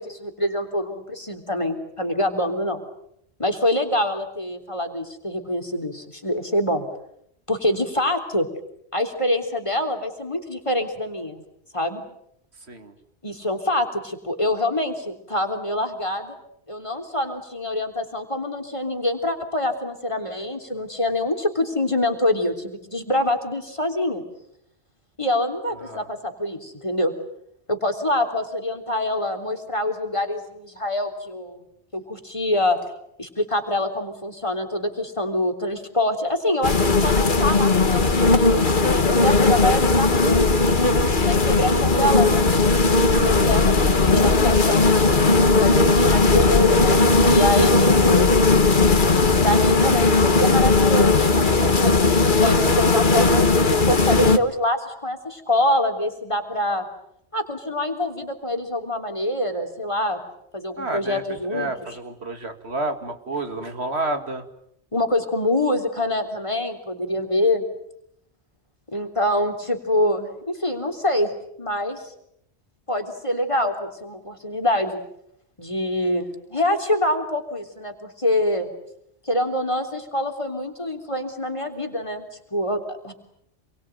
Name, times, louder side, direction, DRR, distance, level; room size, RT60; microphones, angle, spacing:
voice 1, 0.0-2.8 3.4-6.8 7.5-8.5 8.9-11.4 11.7-12.0 13.2-16.4 16.7-24.2 25.2-27.1 27.7-31.6 31.9-32.8 33.2-40.7 41.2-42.4 43.2-43.8 44.1-44.9 45.6-48.3 49.1-56.8 57.3-60.2 60.5-61.7 64.9-67.6 68.9-71.3 71.6-72.1 72.9-75.0 75.6-78.7 79.3-82.3 82.5-83.1, left 1 dB, 30° left, 4 dB, 3.6 m, -25 dB
sound 1, 36.6-54.4, left 3 dB, 50° left, 1.7 m, -17 dB
voice 2, 42.7-43.4 60.8-61.2 61.5-64.4, right 2 dB, 75° right, 7 dB, 2.7 m, -30 dB
28.0 x 23.0 x 9.2 m, 0.75 s
omnidirectional pair, 1.1 m